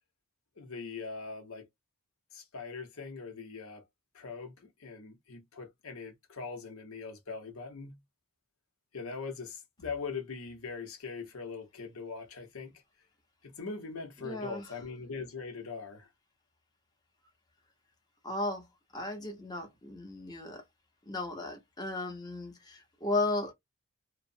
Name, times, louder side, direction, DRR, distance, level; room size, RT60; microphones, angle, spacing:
voice 1, 0.6-1.7 2.3-3.8 4.1-8.0 8.9-12.7 13.4-16.1, left 4 dB, 80° left, 0.8 m, -41 dB
voice 2, 14.2-14.6 18.2-18.7 18.9-20.6 21.1-23.5, left 2 dB, 20° left, 0.8 m, -35 dB
3.0 x 2.0 x 2.6 m
head